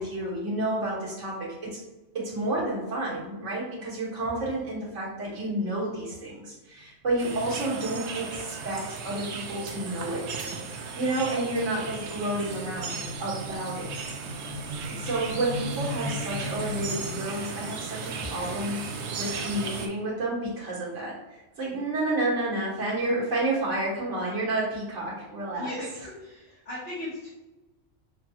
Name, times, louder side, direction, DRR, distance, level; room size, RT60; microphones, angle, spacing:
voice 1, 0.0-1.8 2.1-10.4 11.0-13.9 14.9-18.9 19.1-21.2 21.6-25.7, right 2 dB, 90° right, -6 dB, 1.8 m, -30 dB
sound 1, 6.8-7.1 7.5-7.6 7.8-17.5, left 1 dB, 45° right, 1.5 m, -40 dB
sound 2, 7.2-19.9, right 5 dB, 70° right, 0.9 m, -36 dB
voice 2, 25.5-27.3, left 1 dB, 60° left, -10 dB, 1.5 m, -37 dB
6.2 x 2.3 x 2.8 m, 1.1 s
omnidirectional pair, 1.2 m